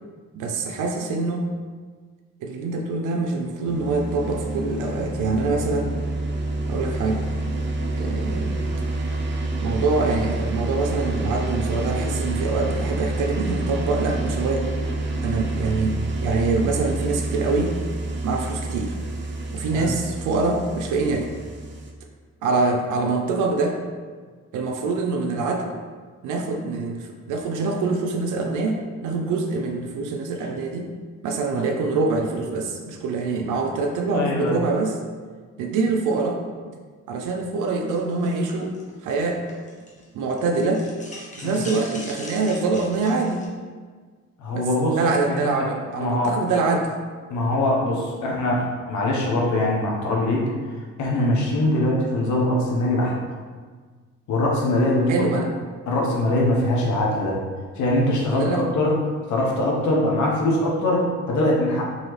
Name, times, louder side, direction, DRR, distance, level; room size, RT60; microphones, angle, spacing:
voice 1, 0.3-1.5 2.4-5.9 6.7-7.3 8.0-8.5 9.5-14.7 15.2-17.8 18.2-18.9 19.5-21.3 22.4-23.8 24.5-25.7 26.2-30.9 31.2-35.0 35.6-36.4 37.1-38.7 39.0-39.4 40.1-40.9 41.4-43.4 44.5-46.9 55.1-55.5 58.3-58.7, right 3 dB, 85° right, 2 dB, 0.5 m, -25 dB
sound 1, 3.7-21.9, right 2 dB, 40° right, 0.6 m, -28 dB
voice 2, 34.1-34.6 41.4-41.6 44.4-45.0 45.3-45.4 46.0-46.4 47.3-50.4 51.0-53.1 54.3-55.3 55.9-57.4 57.8-59.0 59.3-61.9, left 1 dB, 75° left, -2 dB, 1.0 m, -22 dB
sound 2, 37.9-40.0 40.3-43.5, left 2 dB, 25° left, 0.9 m, -41 dB
4.0 x 2.9 x 3.2 m, 1.5 s
cardioid pair, 90°, 30 cm